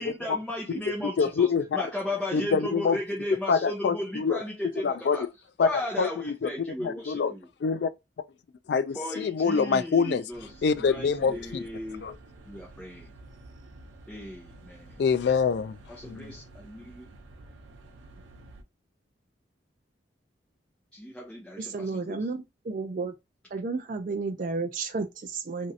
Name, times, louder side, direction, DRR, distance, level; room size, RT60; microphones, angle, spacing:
voice 1, 0.0-5.3 5.6-7.5 8.9-10.5 10.8-12.0 12.4-13.1 14.1-15.0 15.9-17.1 20.9-22.2, left 1 dB, 5° left, 0.7 m, -35 dB
voice 2, 1.2-1.6 2.3-3.0 3.5-4.4 4.8-5.2 5.6-5.7 6.0-6.5 6.8-7.3 7.6-7.9 8.7-10.2 10.6-11.4 12.0-12.2 15.0-15.8 16.0-16.3, left 5 dB, 60° left, 0.3 m, -25 dB
Tren Int. Train Room Tone Inc. Proxima Parada, 10.3-18.6, right 2 dB, 90° right, 0.6 m, -50 dB
voice 3, 21.6-23.1 23.5-25.7, right 4 dB, 45° right, 0.3 m, -32 dB
3.0 x 2.6 x 2.7 m
head